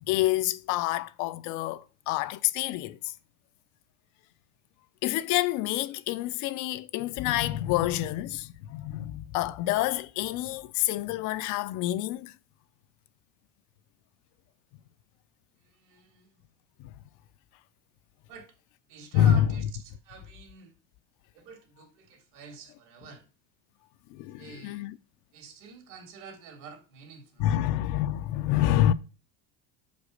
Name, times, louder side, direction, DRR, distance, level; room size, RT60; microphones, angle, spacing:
voice 1, 0.1-3.1 5.0-12.3 16.8-16.9 19.1-19.5 24.1-24.9 27.4-28.9, left 13 dB, 60° left, 0.6 m, -27 dB
voice 2, 15.6-16.4 18.3-18.5 18.9-20.8 21.3-23.3 24.3-24.8 25.3-27.7, right 5 dB, 65° right, 2.5 m, -48 dB
6.0 x 5.2 x 6.3 m
cardioid pair, 155°, 35 cm